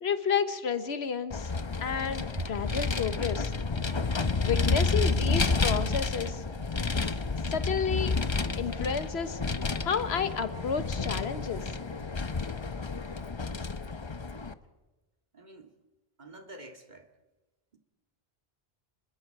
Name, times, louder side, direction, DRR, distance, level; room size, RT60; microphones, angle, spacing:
voice 1, 0.0-1.5 1.8-3.5 4.4-6.4 7.4-8.2 8.5-9.4 9.8-11.7, left 6 dB, 85° left, 11 dB, 1.4 m, -31 dB
Vehicle, 1.3-14.5, left 4 dB, 30° left, 0.8 m, -30 dB
voice 2, 15.3-15.7 16.2-17.1, right 2 dB, 45° right, 5 dB, 2.2 m, -43 dB
30.0 x 21.5 x 4.7 m, 1.1 s
omnidirectional pair, 1.0 m